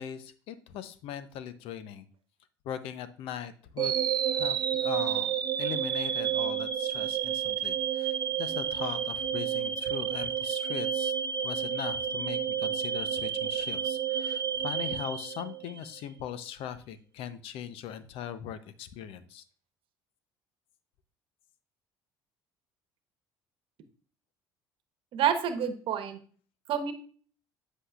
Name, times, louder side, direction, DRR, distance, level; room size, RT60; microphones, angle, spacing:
voice 1, 0.0-2.0 2.6-4.0 4.3-11.1 11.4-19.4, left 9 dB, 65° left, 13 dB, 0.7 m, -40 dB
sound 1, 3.8-15.9, right 8 dB, 40° right, 0.7 m, -30 dB
voice 2, 25.1-26.2 26.7-26.9, right 8 dB, 60° right, 9 dB, 1.1 m, -28 dB
8.2 x 7.7 x 2.4 m, 0.43 s
hypercardioid pair, 65°, 10 cm